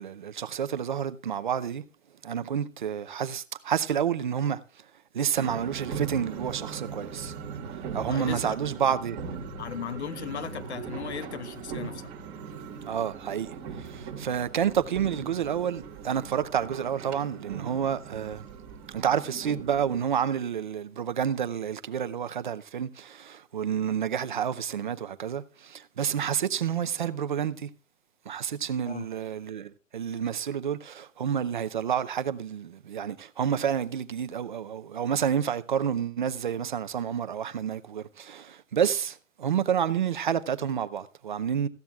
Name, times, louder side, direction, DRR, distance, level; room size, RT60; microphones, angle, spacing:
voice 1, 0.0-1.8 2.2-4.6 5.1-7.3 7.9-9.2 12.8-18.5 18.9-27.7 28.3-41.7, right 8 dB, 40° right, 0.6 m, -29 dB
sound 1, 5.4-20.0, right 6 dB, 10° right, 1.3 m, -39 dB
voice 2, 8.1-8.6 9.6-12.1 28.9-29.1, left 8 dB, 55° left, 0.8 m, -37 dB
17.5 x 14.5 x 2.4 m
hypercardioid pair, 170°, 39 cm